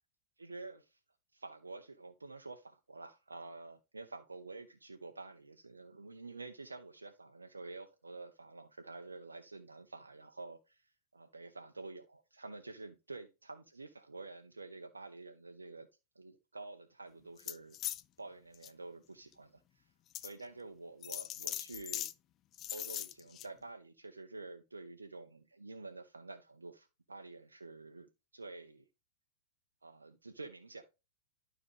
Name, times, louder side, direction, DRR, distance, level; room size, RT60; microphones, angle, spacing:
voice 1, 0.4-1.0 1.3-15.9 16.2-17.8 18.2-19.9 20.2-22.1 22.7-28.9 29.8-30.9, right 3 dB, 80° right, 0.7 m, -49 dB
sound 1, 17.4-18.0 18.5-18.7 19.3-19.4 20.1-20.3 21.0-22.1 22.5-23.5, left 12 dB, 30° left, 0.4 m, -40 dB
12.0 x 5.0 x 3.2 m
figure-of-eight pair, 100°, 0 cm